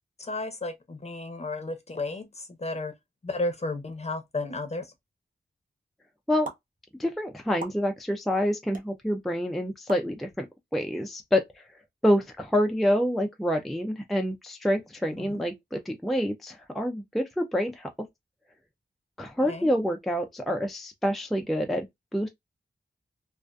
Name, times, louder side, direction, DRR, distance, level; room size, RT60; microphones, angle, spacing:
voice 1, 0.2-2.9 3.2-4.9 15.2-15.4 19.4-19.7, left 2 dB, 35° left, 0.6 m, -33 dB
sound 1, 6.4-6.6 7.6-7.8 8.7-8.9 9.9-10.1, right 4 dB, 50° right, 0.6 m, -37 dB
voice 2, 7.0-10.5 10.7-11.6 12.0-17.9 19.2-21.9 22.1-22.3, equal, ahead, 0.4 m, -27 dB
2.4 x 2.4 x 2.2 m
wide cardioid pair, 85°, 18 cm